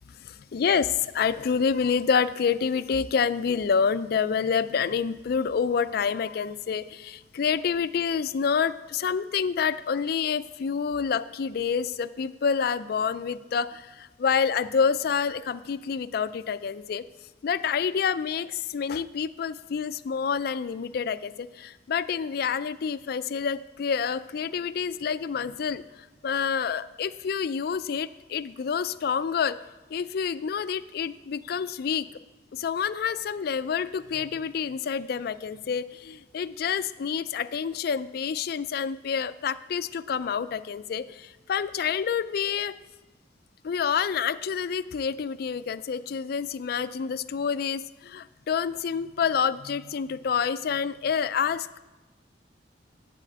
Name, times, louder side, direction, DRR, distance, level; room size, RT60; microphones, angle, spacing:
voice 1, 0.2-17.0 17.4-29.6 29.9-32.1 32.5-42.7 43.6-51.7, left 6 dB, 60° left, 13 dB, 0.4 m, -28 dB
11.0 x 4.2 x 7.8 m, 1.1 s
head